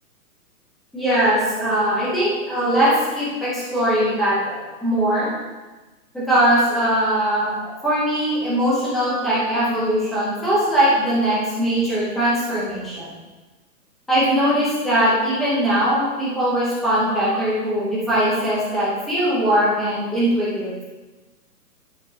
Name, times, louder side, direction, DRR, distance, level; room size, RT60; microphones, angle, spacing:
voice 1, 0.9-5.3 6.1-7.5 7.8-13.1 14.1-20.7, right 1 dB, ahead, -10 dB, 0.8 m, -20 dB
12.0 x 7.7 x 2.9 m, 1.2 s
hypercardioid pair, 165°, 48 cm